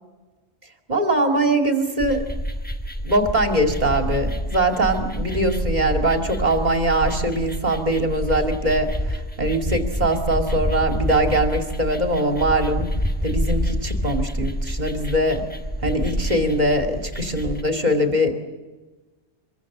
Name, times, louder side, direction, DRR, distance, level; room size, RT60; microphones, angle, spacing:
voice 1, 0.9-2.2 3.0-12.9 13.2-15.4 15.8-18.3, right 1 dB, 40° right, 4 dB, 2.6 m, -22 dB
sound 1, 2.0-17.6, equal, 10° left, 1.2 m, -28 dB
25.0 x 22.5 x 7.4 m, 1.2 s
omnidirectional pair, 1.2 m